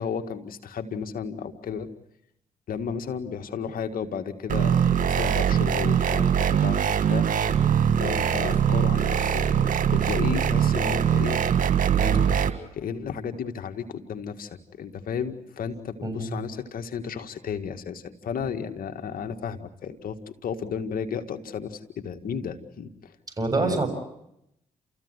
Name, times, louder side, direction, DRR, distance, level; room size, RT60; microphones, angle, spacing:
voice 1, 0.0-1.9 2.7-7.3 8.0-9.5 9.9-11.4 12.7-23.2 23.6-23.8, left 6 dB, 70° left, 6 dB, 2.1 m, -33 dB
sound 1, 4.5-12.5, right 8 dB, 60° right, 1.8 m, -22 dB
voice 2, 16.0-16.4 23.4-23.9, right 2 dB, 25° right, 5 dB, 6.9 m, -26 dB
29.5 x 15.0 x 9.9 m, 0.80 s
supercardioid pair, 50°, 15 cm